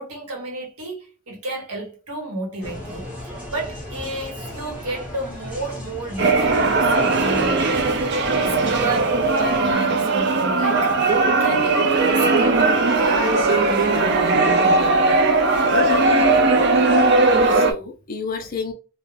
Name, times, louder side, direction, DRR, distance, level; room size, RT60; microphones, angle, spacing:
voice 1, 0.0-11.0 11.2-14.0 14.6-14.9, right 2 dB, 85° right, 1.0 m, -31 dB
sound 1, 2.6-9.7, left 1 dB, 5° right, 0.7 m, -36 dB
sound 2, 6.2-17.7, right 3 dB, 50° right, 0.4 m, -18 dB
voice 2, 17.0-18.7, left 4 dB, 40° left, 0.5 m, -31 dB
2.4 x 2.0 x 3.1 m
head